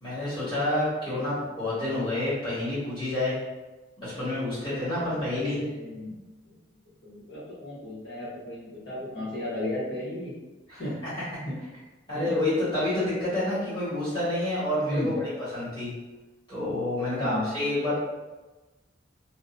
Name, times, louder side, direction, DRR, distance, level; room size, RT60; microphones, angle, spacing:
voice 1, 0.0-3.4 4.0-5.6 10.7-11.1 12.1-15.1 15.5-15.9 16.5-17.9, left 1 dB, 25° left, -13 dB, 1.5 m, -28 dB
voice 2, 5.4-6.2 6.5-6.6 7.0-10.3 10.8-11.0 11.4-11.6 12.1-12.4 14.9-15.1 17.2-17.5, left 1 dB, 55° left, -9 dB, 1.0 m, -34 dB
2.7 x 2.0 x 2.4 m, 1.1 s
head